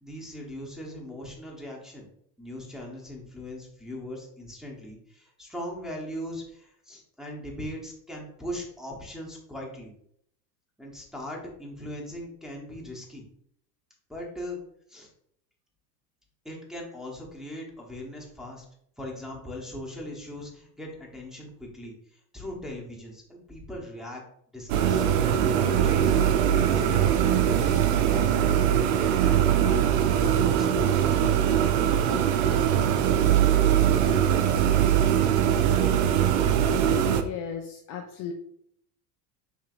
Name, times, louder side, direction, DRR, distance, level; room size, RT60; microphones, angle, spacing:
voice 1, 0.0-2.1 2.4-9.9 10.8-13.2 14.1-14.6 14.9-15.1 16.4-18.6 19.0-24.2 24.5-26.2 26.6-31.6, left 1 dB, ahead, -3 dB, 1.0 m, -39 dB
sound 1, 24.7-37.2, right 9 dB, 65° right, 0.6 m, -22 dB
voice 2, 37.0-38.3, left 7 dB, 45° left, 3 dB, 0.5 m, -36 dB
4.6 x 2.8 x 2.5 m, 0.69 s
hypercardioid pair, 95°, 50 cm